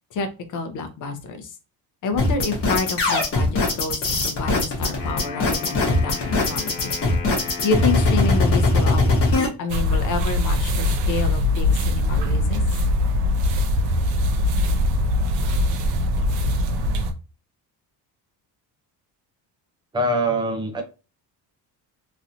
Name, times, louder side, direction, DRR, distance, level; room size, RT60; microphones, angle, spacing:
voice 1, 0.1-1.5 2.0-6.9 7.4-9.1 9.4-12.6, left 4 dB, 50° left, 7 dB, 0.8 m, -28 dB
sound 1, 2.2-9.5, left 2 dB, 35° left, 1.0 m, -20 dB
Wind instrument woodwind instrument, 4.9-8.8, left 6 dB, 80° left, 1.3 m, -36 dB
sound 2, 9.7-17.1, left 1 dB, 85° right, 0.7 m, -21 dB
voice 2, 19.9-20.8, right 1 dB, 10° right, 4 dB, 0.5 m, -23 dB
3.1 x 2.7 x 2.6 m, 0.31 s
cardioid pair, 160°, 41 cm